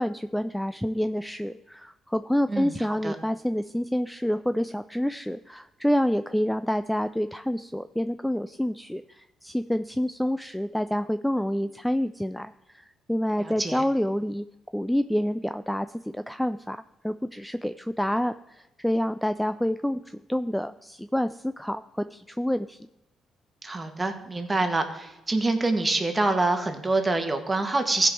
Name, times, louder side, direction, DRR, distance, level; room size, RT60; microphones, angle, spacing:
voice 1, 0.0-14.5 14.7-22.8, equal, 5° left, 11 dB, 0.3 m, -28 dB
voice 2, 2.5-3.1 13.4-13.8 23.6-28.1, right 2 dB, 20° right, 5 dB, 1.5 m, -26 dB
15.0 x 5.3 x 4.6 m, 0.97 s
cardioid pair, 90°, 0 cm